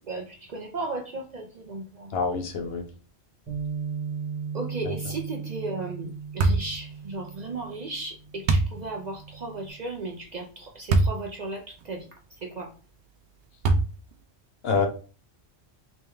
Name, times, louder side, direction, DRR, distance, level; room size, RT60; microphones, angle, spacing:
voice 1, 0.0-2.1 4.5-12.1 12.4-12.7, right 2 dB, 50° right, 2 dB, 0.5 m, -35 dB
voice 2, 2.1-2.8 14.6-14.9, left 4 dB, 65° left, 5 dB, 0.9 m, -26 dB
Bass guitar, 3.5-9.7, right 6 dB, 35° right, 1.3 m, -37 dB
sound 1, 6.4-6.7 8.5-8.8 10.9-11.2 11.8-11.9 13.6-14.1, right 3 dB, 85° right, 0.9 m, -21 dB
3.4 x 3.0 x 3.3 m, 0.36 s
omnidirectional pair, 1.1 m